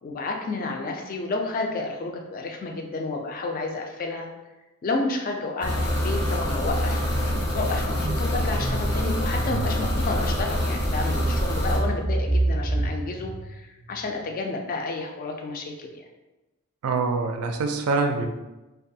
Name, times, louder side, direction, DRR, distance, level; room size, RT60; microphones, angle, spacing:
voice 1, 0.0-4.3 4.8-7.1 7.5-16.0, left 3 dB, 40° left, 2 dB, 0.3 m, -30 dB
sound 1, 4.9-5.2 5.5-14.3, right 1 dB, 15° right, 0.5 m, -30 dB
sound 2, 5.6-11.8, equal, 80° left, 1.0 m, -25 dB
voice 2, 16.8-18.3, right 4 dB, 85° right, 4 dB, 0.3 m, -24 dB
2.5 x 2.3 x 2.6 m, 1.1 s
head